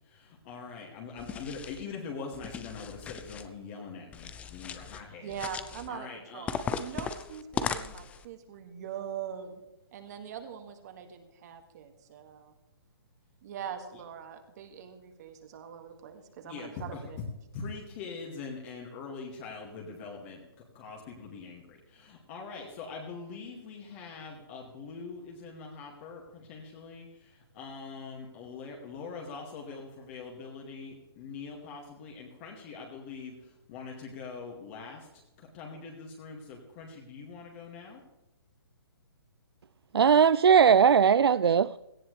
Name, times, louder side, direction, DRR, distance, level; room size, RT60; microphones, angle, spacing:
voice 1, 0.1-5.3 5.9-6.5 16.4-17.0 17.5-20.5 20.7-38.0, left 4 dB, 30° left, 2.3 m, -43 dB
sound 1, 1.2-1.8 2.3-3.5 4.1-5.0 5.3-5.9 6.5-8.2, left 6 dB, 10° left, 0.5 m, -37 dB
voice 2, 5.2-9.6 9.9-12.5 13.4-17.0, right 8 dB, 45° right, 2.2 m, -42 dB
voice 3, 39.9-41.8, right 7 dB, 85° right, 0.4 m, -20 dB
17.5 x 14.0 x 3.4 m
hypercardioid pair, 145°, 13 cm